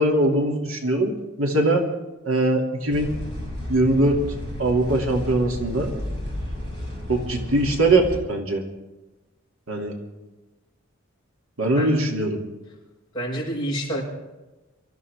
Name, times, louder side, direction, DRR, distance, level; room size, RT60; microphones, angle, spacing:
voice 1, 0.0-1.9 2.2-3.1 3.7-4.2 4.6-5.9 7.1-8.6 9.7-9.9 11.6-12.4, right 1 dB, 90° right, 1 dB, 2.7 m, -21 dB
sound 1, 2.9-8.2, left 1 dB, 55° right, 6.2 m, -32 dB
voice 2, 13.1-14.0, right 1 dB, 25° left, -3 dB, 5.5 m, -27 dB
24.0 x 14.0 x 3.6 m, 1.1 s
head